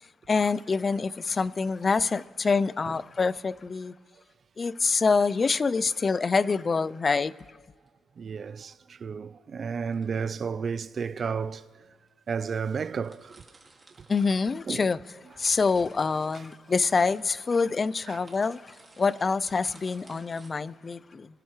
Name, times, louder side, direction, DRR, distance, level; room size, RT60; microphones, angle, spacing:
voice 1, 0.3-3.9 4.6-7.3 14.1-15.0 15.4-21.3, left 4 dB, 35° left, 0.3 m, -26 dB
sound 1, 7.6-7.9 9.7-10.4 11.2-11.3 12.1-12.2 12.4-12.5 12.7-14.9 15.2-20.5, right 3 dB, 25° right, 2.0 m, -57 dB
voice 2, 8.2-11.9 12.3-13.4 14.0-14.1 14.7-14.9 15.4-15.5 16.3-16.4 18.1-18.2, right 6 dB, 45° right, 0.4 m, -33 dB
23.5 x 11.5 x 3.1 m
cardioid pair, 90°, 0 cm